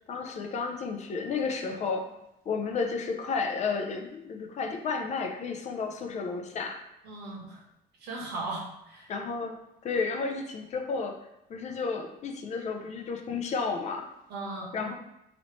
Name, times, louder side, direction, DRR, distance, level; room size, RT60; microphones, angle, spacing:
voice 1, 0.1-2.1 2.5-6.8 9.1-11.2 11.5-14.1 14.7-14.9, left 4 dB, 45° left, 4 dB, 0.4 m, -32 dB
voice 2, 7.0-7.6 8.0-9.1 14.3-14.7, right 2 dB, 80° right, -2 dB, 1.0 m, -37 dB
3.1 x 2.7 x 2.9 m, 0.84 s
cardioid pair, 110°, 17 cm